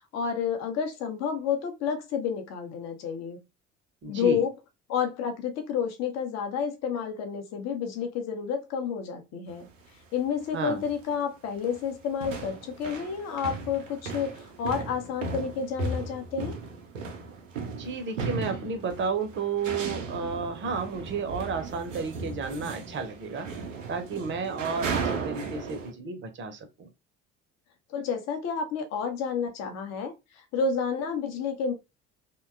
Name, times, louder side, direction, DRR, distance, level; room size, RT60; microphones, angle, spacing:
voice 1, 0.1-3.4 4.1-4.5 4.9-9.7 10.1-16.5 27.9-30.1 30.5-31.7, left 6 dB, 45° left, 0.7 m, -30 dB
voice 2, 4.0-4.4 10.5-10.8 17.8-23.5 23.9-26.9, right 5 dB, 30° right, 0.6 m, -32 dB
sound 1, 9.5-9.7 10.5-10.6 10.8-11.2 11.5-25.9, right 4 dB, 85° right, 0.5 m, -36 dB
2.7 x 2.2 x 2.3 m
figure-of-eight pair, 55°, 37 cm